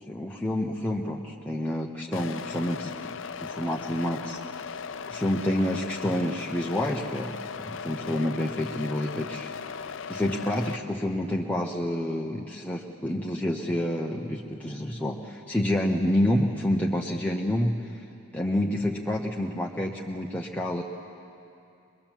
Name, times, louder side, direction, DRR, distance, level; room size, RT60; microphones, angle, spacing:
voice 1, 0.1-4.4 5.1-9.5 10.1-18.0 18.3-20.8, left 1 dB, 5° left, -2 dB, 0.9 m, -28 dB
sound 1, 2.1-10.8, left 6 dB, 70° left, 0.6 m, -38 dB
23.5 x 22.5 x 7.4 m, 2.7 s
head